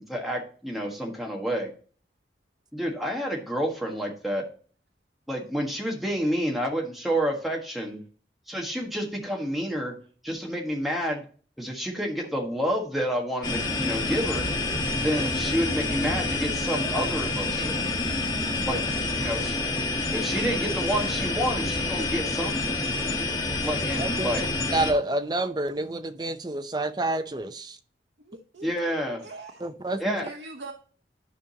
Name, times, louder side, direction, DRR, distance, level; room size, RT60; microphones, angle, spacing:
voice 1, 0.1-1.7 2.7-4.4 5.3-8.0 8.5-9.9 10.2-11.2 11.6-14.4 15.0-17.9 18.6-18.8 19.2-19.6 20.1-22.8 23.6-24.5 28.6-29.2 30.0-30.3, equal, ahead, 1.5 m, -29 dB
voice 2, 6.3-6.6 18.7-18.8 28.2-29.7 30.2-30.7, right 2 dB, 70° right, 0.9 m, -43 dB
sound 1, 13.4-24.9, left 2 dB, 25° left, 1.3 m, -28 dB
voice 3, 24.0-24.3 24.7-27.8 29.6-30.2, right 2 dB, 25° right, 0.6 m, -28 dB
11.5 x 5.1 x 2.8 m
head